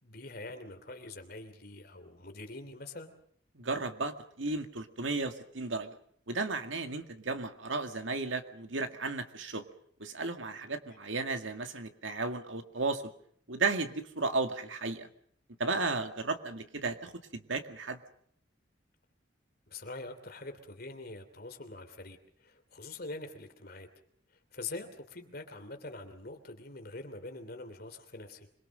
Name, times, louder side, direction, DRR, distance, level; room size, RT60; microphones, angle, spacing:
voice 1, 0.0-3.1 19.7-23.9 24.5-28.5, left 2 dB, 50° left, 6 dB, 3.0 m, -44 dB
voice 2, 3.5-6.0 6.3-9.6 10.0-13.1 13.5-15.1 15.6-18.0, right 3 dB, 80° right, 7 dB, 2.1 m, -34 dB
26.0 x 22.0 x 6.4 m, 0.63 s
head